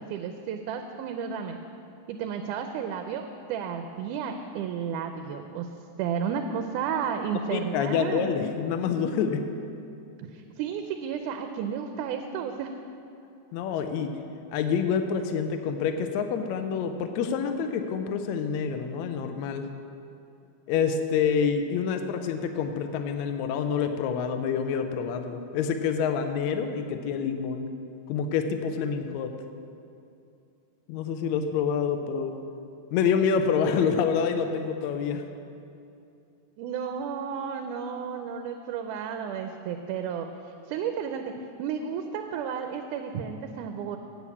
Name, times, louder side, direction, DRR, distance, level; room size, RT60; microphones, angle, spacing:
voice 1, 0.0-1.6 2.1-5.7 6.0-8.3 10.3-12.7 36.6-40.3 40.7-41.3 41.6-44.0, right 7 dB, 85° right, 6 dB, 2.1 m, -32 dB
voice 2, 7.5-9.4 13.5-14.1 14.5-19.7 20.7-27.7 28.1-29.3 30.9-32.3 32.9-35.2, left 6 dB, 75° left, 7 dB, 1.7 m, -27 dB
8.8 x 7.1 x 8.3 m, 2.6 s
omnidirectional pair, 3.6 m